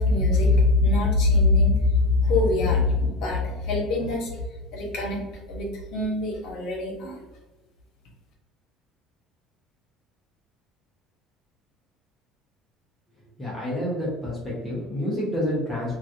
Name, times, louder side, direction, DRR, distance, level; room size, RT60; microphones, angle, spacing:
voice 1, 0.0-4.3 4.7-5.2 5.5-7.2, left 3 dB, 65° left, -2 dB, 1.0 m, -22 dB
voice 2, 13.4-16.0, left 1 dB, 15° left, -6 dB, 0.9 m, -28 dB
3.0 x 2.4 x 2.6 m, 1.2 s
cardioid pair, 135°, 0 cm